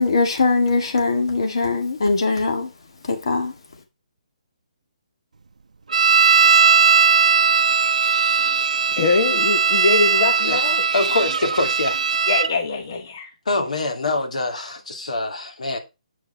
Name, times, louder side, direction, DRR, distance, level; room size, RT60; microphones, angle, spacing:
voice 1, 0.0-2.7 3.1-3.5, left 3 dB, 45° left, 1.8 m, -21 dB
sound 1, 5.9-12.5, right 5 dB, 75° right, 0.6 m, -18 dB
voice 2, 9.0-10.9 12.3-13.3, left 4 dB, 30° left, 0.9 m, -22 dB
voice 3, 10.9-12.0 13.5-15.8, left 2 dB, 75° left, 2.8 m, -24 dB
8.5 x 6.8 x 4.5 m
hypercardioid pair, 180°, 4 cm